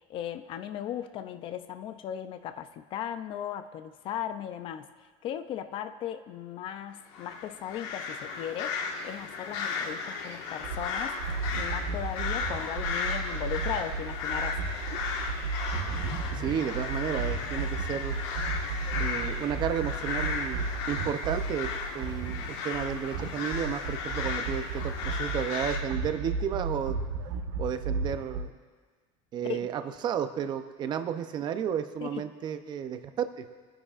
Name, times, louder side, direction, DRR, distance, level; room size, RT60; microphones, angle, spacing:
voice 1, 0.1-4.9 5.2-11.2 11.5-14.6 29.5-29.6 32.0-32.2, left 10 dB, 35° left, 11 dB, 0.4 m, -37 dB
sound 1, 7.1-25.8, left 5 dB, 85° left, 1.5 m, -35 dB
sound 2, 10.6-28.4, right 4 dB, 80° right, 1.2 m, -34 dB
voice 2, 16.3-18.2 19.0-27.0 27.6-28.5 29.3-33.5, right 8 dB, 30° right, 9 dB, 0.6 m, -32 dB
24.0 x 10.0 x 2.5 m, 1.5 s
cardioid pair, 170°, 15 cm